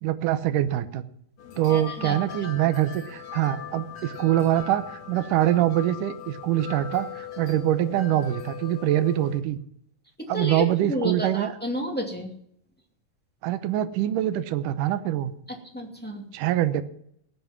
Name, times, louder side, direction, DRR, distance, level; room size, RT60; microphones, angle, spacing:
voice 1, 0.0-1.0 1.6-9.6 10.3-11.5 13.4-15.3 16.3-16.8, right 13 dB, 75° right, 11 dB, 2.4 m, -24 dB
sound 1, 1.4-9.4, left 9 dB, 55° left, 2.9 m, -40 dB
voice 2, 1.7-2.5 10.2-12.3 15.5-16.2, equal, 5° left, 1 dB, 1.7 m, -31 dB
18.5 x 8.1 x 6.0 m, 0.69 s
omnidirectional pair, 3.9 m